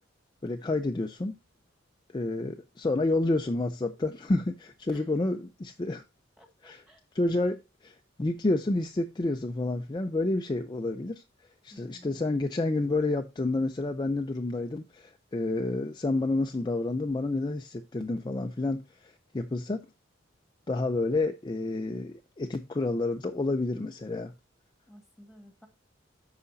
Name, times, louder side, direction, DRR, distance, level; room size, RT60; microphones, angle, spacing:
voice 1, 0.4-1.3 2.1-6.0 6.6-6.8 7.1-11.2 11.6-19.8 20.7-24.3, left 2 dB, 25° left, 0.5 m, -29 dB
voice 2, 6.4-7.0 11.7-12.5 24.9-25.7, left 1 dB, ahead, 1.7 m, -54 dB
14.0 x 5.0 x 2.6 m
head